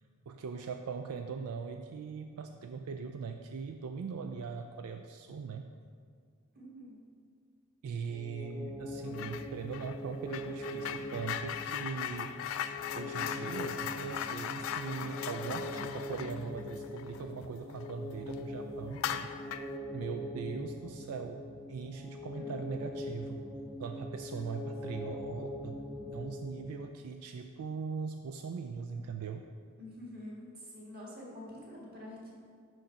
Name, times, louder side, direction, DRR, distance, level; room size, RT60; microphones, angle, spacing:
voice 1, 0.3-5.7 7.8-12.4 12.9-19.3 19.9-21.4 21.7-23.4 23.8-25.8 26.1-29.5, right 5 dB, 80° right, 5 dB, 0.3 m, -40 dB
voice 2, 6.5-7.0 9.1-9.3 22.3-22.5 24.3-24.8 29.8-32.3, left 1 dB, 45° right, -4 dB, 1.7 m, -47 dB
sound 1, 8.1-26.9, left 1 dB, 5° right, 0.7 m, -42 dB
sound 2, 9.1-9.5 9.7-17.9 18.3-18.4 18.9-19.8, left 9 dB, 65° left, 0.3 m, -39 dB
6.3 x 5.3 x 5.7 m, 2.1 s
head